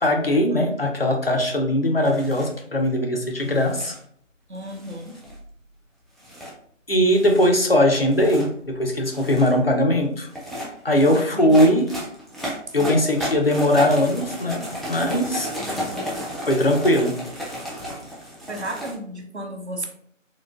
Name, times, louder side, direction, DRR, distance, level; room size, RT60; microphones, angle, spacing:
voice 1, 0.0-3.9 6.9-10.3 10.8-11.8 12.7-15.5 16.5-17.2, equal, 50° left, 3 dB, 0.6 m, -20 dB
sound 1, 2.0-2.5 3.4-4.0 4.7-5.4 6.2-6.5 7.1-7.5 8.0-8.5 9.0-9.6 10.3-18.9, equal, ahead, 0.5 m, -33 dB
voice 2, 4.5-5.2 11.2-11.6 12.8-13.0 15.6-16.1 18.5-19.9, right 1 dB, 60° right, 3 dB, 0.7 m, -34 dB
3.8 x 2.8 x 2.3 m, 0.62 s
figure-of-eight pair, 175°, 38 cm